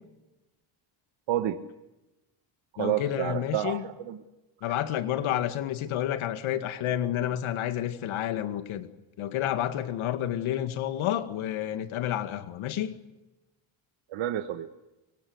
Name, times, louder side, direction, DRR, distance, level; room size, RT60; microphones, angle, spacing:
voice 1, 1.3-1.6 2.8-4.2 14.1-14.7, right 12 dB, 65° right, 1.5 m, -29 dB
voice 2, 2.8-3.9 4.6-8.9 9.2-12.9, left 11 dB, 70° left, 2.2 m, -30 dB
24.5 x 24.0 x 8.0 m
cardioid pair, 135°, 50 cm